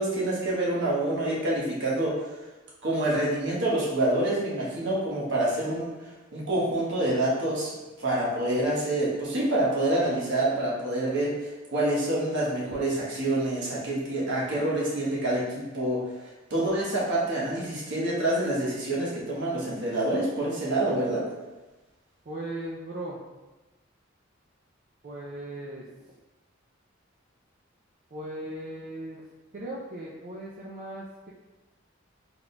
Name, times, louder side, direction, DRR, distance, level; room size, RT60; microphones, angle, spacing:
voice 1, 0.0-2.3 2.8-21.3, right 1 dB, 60° right, -6 dB, 1.2 m, -27 dB
voice 2, 22.3-23.2 25.0-25.9 28.1-29.2 29.5-31.3, right 1 dB, 45° right, -4 dB, 0.4 m, -37 dB
4.0 x 3.6 x 2.2 m, 1.1 s
head